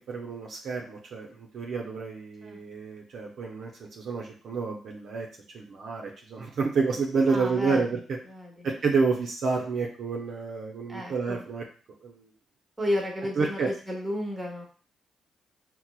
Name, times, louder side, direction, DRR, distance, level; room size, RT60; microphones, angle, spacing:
voice 1, 0.1-3.7 4.0-5.3 5.5-8.0 8.6-11.6 12.0-12.3 13.4-13.7, right 4 dB, 70° right, -1 dB, 0.5 m, -29 dB
voice 2, 7.3-7.8 8.3-8.7 10.9-11.4 12.8-14.6, left 1 dB, 20° right, -1 dB, 1.2 m, -32 dB
4.3 x 2.0 x 2.3 m, 0.40 s
supercardioid pair, 60°, 0 cm